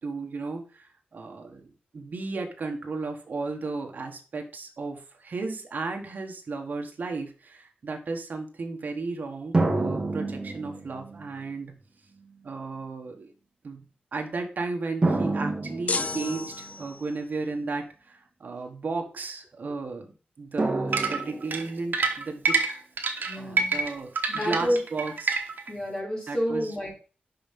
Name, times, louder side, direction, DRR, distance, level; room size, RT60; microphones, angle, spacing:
voice 1, 0.0-11.8 12.4-13.3 13.6-13.8 14.1-22.7 23.4-25.4 26.3-26.8, right 3 dB, 55° right, 3 dB, 1.4 m, -34 dB
sound 1, 9.5-11.3 12.2-12.3 15.0-16.7 20.6-21.9, right 2 dB, 25° right, 1.3 m, -28 dB
sound 2, 15.9-17.2, left 4 dB, 45° left, 0.5 m, -32 dB
sound 3, 20.9-25.7, right 4 dB, 75° right, 1.1 m, -27 dB
voice 2, 23.2-23.8 24.3-24.8 25.7-26.9, equal, 25° left, -4 dB, 3.4 m, -29 dB
5.6 x 5.6 x 5.3 m, 0.37 s
wide cardioid pair, 170°, 3 cm